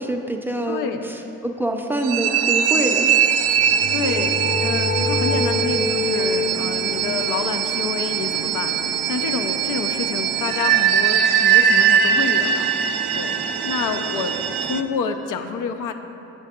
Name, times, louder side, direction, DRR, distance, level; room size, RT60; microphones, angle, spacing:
voice 1, 0.0-3.1, right 1 dB, 5° right, 2 dB, 0.5 m, -25 dB
voice 2, 0.7-1.1 3.9-8.8 9.0-12.7 13.1-14.4 14.7-15.9, left 6 dB, 85° left, 7 dB, 0.5 m, -28 dB
sound 1, 2.0-14.8, right 8 dB, 90° right, 0.5 m, -21 dB
sound 2, 3.4-9.0, left 3 dB, 45° left, 0.7 m, -27 dB
7.4 x 6.6 x 3.6 m, 2.9 s
cardioid pair, 105°, 31 cm